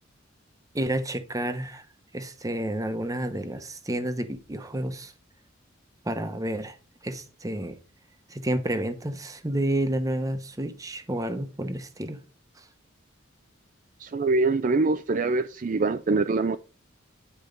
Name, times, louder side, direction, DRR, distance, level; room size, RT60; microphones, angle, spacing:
voice 1, 0.7-1.8 2.1-5.1 6.0-6.8 7.0-7.8 8.3-12.2 12.6-12.7, right 1 dB, 15° right, 1.0 m, -30 dB
voice 2, 14.0-16.6, right 3 dB, 40° right, 0.4 m, -24 dB
10.5 x 4.5 x 5.2 m
head